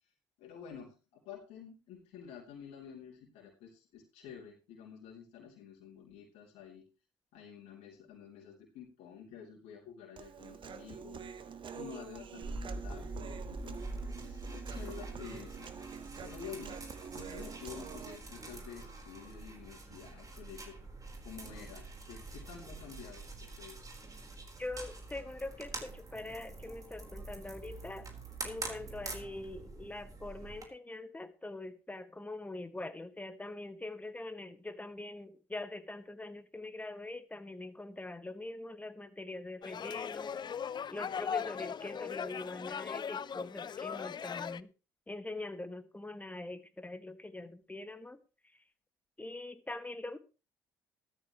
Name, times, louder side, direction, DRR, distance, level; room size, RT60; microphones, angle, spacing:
voice 1, 0.4-6.9 7.3-13.9 14.2-15.7 16.2-16.8 17.1-20.8 21.2-23.9, left 7 dB, 70° left, -3 dB, 3.3 m, -50 dB
Human voice, 10.2-18.2, right 7 dB, 50° right, 1.5 m, -46 dB
sound 1, 12.4-30.7, right 2 dB, 30° right, 4.3 m, -45 dB
voice 2, 24.6-28.1 28.4-40.4 40.9-44.7 45.1-48.2 48.5-48.6 49.2-50.2, left 2 dB, 15° left, 9 dB, 1.9 m, -43 dB
sound 2, 39.6-44.6, left 7 dB, 40° left, 0.6 m, -39 dB
15.5 x 13.0 x 3.1 m, 0.33 s
hypercardioid pair, 55°, 11 cm